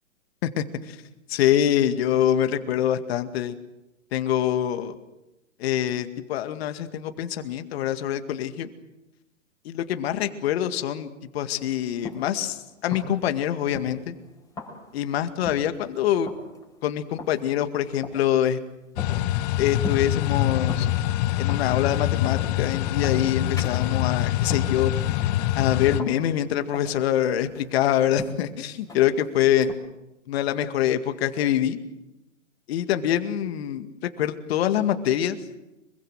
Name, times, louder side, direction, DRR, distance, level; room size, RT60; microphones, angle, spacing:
voice 1, 0.4-1.0 1.3-3.6 4.1-4.9 5.6-8.7 9.6-14.1 14.9-16.3 16.8-18.6 19.6-20.9 21.4-24.9 25.5-29.7 30.3-31.8 32.7-35.4, left 11 dB, 50° left, 8 dB, 2.2 m, -25 dB
sound 1, 11.5-29.7, left 3 dB, 10° left, 5.6 m, -41 dB
sound 2, 19.0-26.0, left 14 dB, 30° left, 0.9 m, -25 dB
25.5 x 23.0 x 7.7 m, 0.95 s
hypercardioid pair, 140°, 39 cm